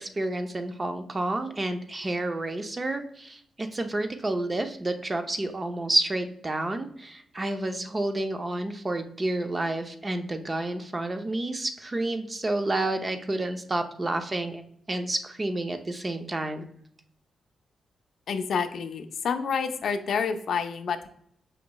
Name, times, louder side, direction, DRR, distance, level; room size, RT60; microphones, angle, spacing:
voice 1, 0.0-14.6 14.9-16.7, right 2 dB, 25° right, 7 dB, 0.5 m, -30 dB
voice 2, 18.3-21.1, left 6 dB, 70° left, 8 dB, 0.4 m, -28 dB
5.1 x 2.9 x 2.2 m, 0.65 s
cardioid pair, 105°, 0 cm